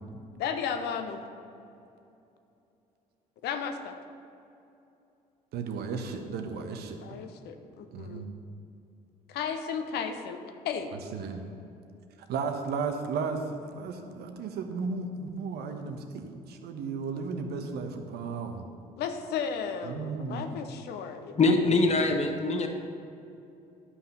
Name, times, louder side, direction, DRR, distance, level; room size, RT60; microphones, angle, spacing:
voice 1, 0.4-1.2 3.4-4.0 5.9-6.0 7.0-8.2 9.3-10.9 19.0-21.9, left 6 dB, 60° left, 7 dB, 0.9 m, -34 dB
voice 2, 5.5-7.2 7.9-8.3 10.9-11.4 12.3-18.6 19.8-20.5 21.7-21.8, right 5 dB, 60° right, 5 dB, 1.1 m, -34 dB
voice 3, 21.4-22.7, left 3 dB, 35° left, 4 dB, 1.3 m, -23 dB
11.5 x 5.8 x 5.5 m, 2.7 s
hypercardioid pair, 50°, 19 cm